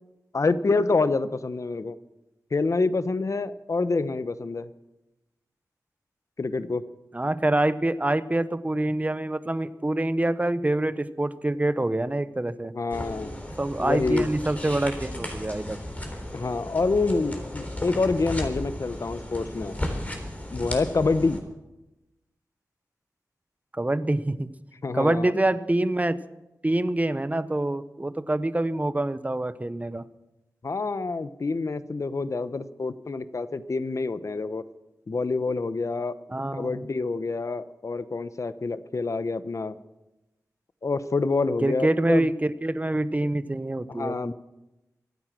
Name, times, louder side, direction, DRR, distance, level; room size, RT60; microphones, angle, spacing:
voice 1, 0.3-2.0 2.5-4.7 6.4-6.8 12.7-13.4 13.8-14.3 16.3-19.8 20.5-21.4 24.8-25.3 30.6-34.6 35.1-36.2 36.5-39.8 40.8-42.3 43.9-44.3, left 3 dB, 55° left, 13 dB, 0.9 m, -27 dB
voice 2, 7.1-12.7 13.6-15.8 23.7-24.5 24.9-26.2 26.6-30.0 36.3-36.9 41.6-44.3, right 1 dB, 25° right, 13 dB, 0.9 m, -26 dB
sound 1, 12.9-21.4, left 1 dB, 20° left, 3.8 m, -35 dB
24.5 x 9.2 x 6.2 m, 0.97 s
cardioid pair, 55°, 7 cm